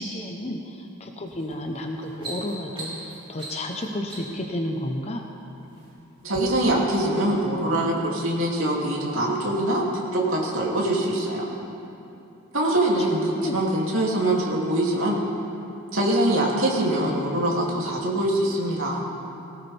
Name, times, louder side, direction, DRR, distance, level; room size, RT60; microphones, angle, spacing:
voice 1, 0.0-5.2 12.6-12.8 13.1-13.6, left 1 dB, 30° left, 2 dB, 0.9 m, -32 dB
sound 1, 1.3-1.5 1.9-4.5 5.3-5.9 6.3-6.4, right 2 dB, 25° right, 2.8 m, -39 dB
voice 2, 6.2-11.5 12.5-15.2 15.9-19.0, right 1 dB, 65° right, -3 dB, 2.8 m, -23 dB
19.0 x 18.0 x 3.5 m, 2.7 s
head